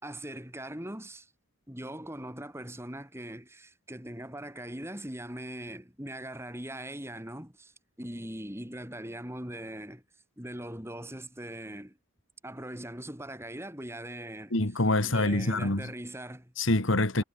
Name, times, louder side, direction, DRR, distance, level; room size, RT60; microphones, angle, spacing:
voice 1, 0.0-1.3 1.7-10.0 10.4-12.0 12.4-14.5 15.0-16.5, right 1 dB, 10° right, 5.7 m, -41 dB
voice 2, 14.5-15.9 16.6-17.2, left 2 dB, 65° left, 2.3 m, -26 dB
head